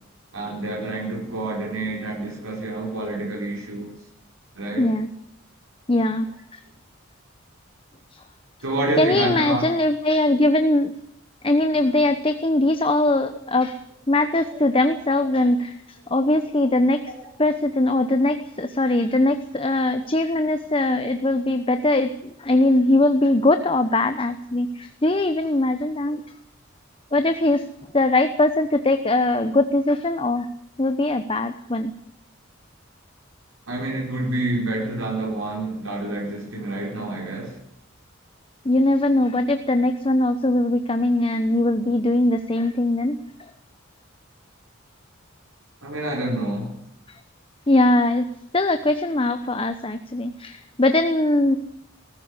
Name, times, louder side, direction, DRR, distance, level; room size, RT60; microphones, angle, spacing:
voice 1, 0.3-3.9 4.5-4.9 8.6-9.6 14.4-14.6 17.1-17.2 33.7-37.5 45.8-46.8, right 2 dB, 90° right, -2 dB, 5.1 m, -28 dB
voice 2, 4.8-5.1 5.9-6.3 8.1-8.2 9.0-10.9 11.4-13.8 14.1-15.7 16.1-17.0 17.4-26.2 27.1-27.6 27.9-30.5 30.8-31.9 38.6-43.2 47.7-48.3 48.5-51.6, left 2 dB, 25° left, 8 dB, 0.9 m, -21 dB
19.5 x 14.5 x 9.8 m, 0.75 s
head